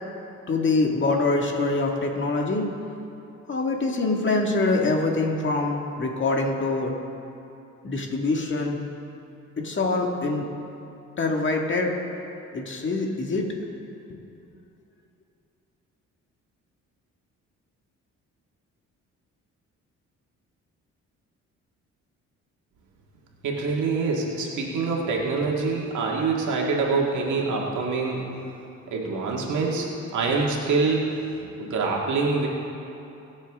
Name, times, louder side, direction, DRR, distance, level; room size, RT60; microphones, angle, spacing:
voice 1, 0.5-2.7 3.5-6.9 7.8-8.8 9.6-10.5 11.2-11.9 12.5-13.5, left 3 dB, 40° left, 1 dB, 1.9 m, -24 dB
voice 2, 23.4-28.2 28.9-29.9 30.1-31.2 31.6-32.5, right 4 dB, 75° right, -2 dB, 2.0 m, -25 dB
22.0 x 7.5 x 3.7 m, 2.8 s
cardioid pair, 90°, 30 cm